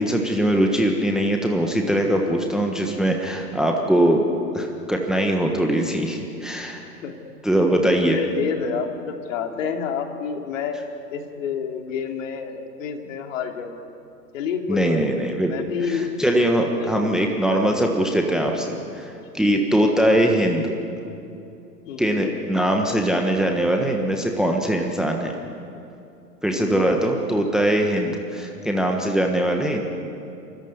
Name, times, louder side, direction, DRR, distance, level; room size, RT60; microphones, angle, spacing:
voice 1, 0.0-4.3 4.5-6.8 7.4-8.2 14.7-15.5 15.8-20.7 22.0-25.3 26.4-29.8, right 1 dB, ahead, 2 dB, 1.4 m, -21 dB
voice 2, 7.7-10.8 11.1-13.8 14.3-15.0 15.5-16.1 16.8-17.9 19.5-19.8 21.8-22.4 26.5-27.0, left 6 dB, 50° left, 4 dB, 3.1 m, -29 dB
29.0 x 14.0 x 9.6 m, 2.7 s
hypercardioid pair, 125°, 48 cm